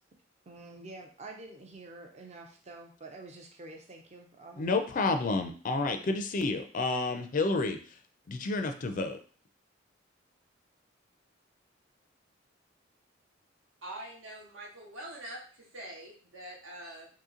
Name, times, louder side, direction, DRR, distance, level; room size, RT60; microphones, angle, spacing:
voice 1, 0.5-4.7, right 2 dB, 35° right, 2 dB, 0.5 m, -48 dB
voice 2, 4.6-7.8 8.3-9.2, left 3 dB, 40° left, 7 dB, 0.4 m, -30 dB
voice 3, 13.8-17.1, right 1 dB, 80° right, -2 dB, 1.2 m, -44 dB
3.0 x 2.8 x 3.7 m, 0.41 s
head